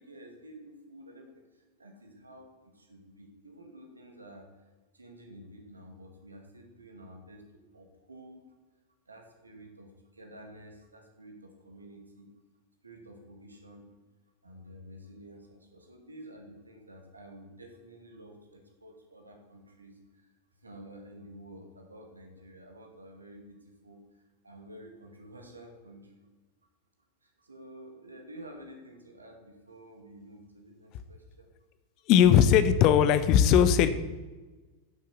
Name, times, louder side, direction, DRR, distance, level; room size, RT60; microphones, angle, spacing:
voice 1, 0.0-4.5 4.9-8.5 9.1-12.3 12.8-14.0 14.4-20.3 20.6-26.3 27.2-31.5, right 1 dB, 80° right, 3 dB, 2.3 m, -50 dB
voice 2, 32.1-33.9, left 9 dB, 40° left, 12 dB, 0.9 m, -19 dB
10.5 x 7.8 x 6.8 m, 1.2 s
figure-of-eight pair, 90°, 0 cm